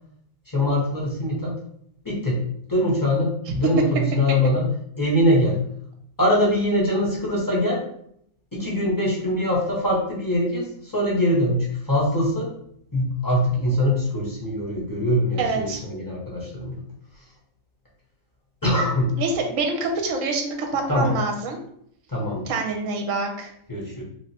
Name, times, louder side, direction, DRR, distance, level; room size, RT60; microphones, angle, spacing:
voice 1, 0.5-1.5 2.0-2.4 2.7-4.6 5.0-5.6 6.2-7.8 8.5-12.5 12.9-16.8 18.6-19.1 20.9-21.1 22.1-22.5 23.7-24.0, left 1 dB, 15° left, -5 dB, 0.9 m, -23 dB
voice 2, 15.4-15.8 19.2-21.6 22.5-23.5, right 3 dB, 70° right, 2 dB, 1.0 m, -26 dB
3.0 x 2.1 x 4.1 m, 0.70 s
omnidirectional pair, 1.4 m